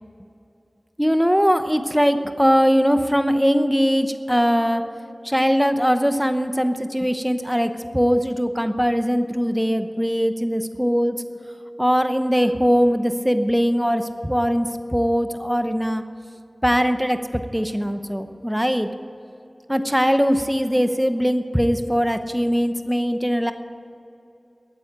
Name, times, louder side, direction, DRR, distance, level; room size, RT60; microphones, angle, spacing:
voice 1, 1.0-4.9 5.2-11.2 11.8-16.0 16.6-18.9 19.7-23.5, equal, ahead, 9 dB, 0.8 m, -21 dB
14.0 x 9.1 x 8.7 m, 2.7 s
wide cardioid pair, 60°, 0 cm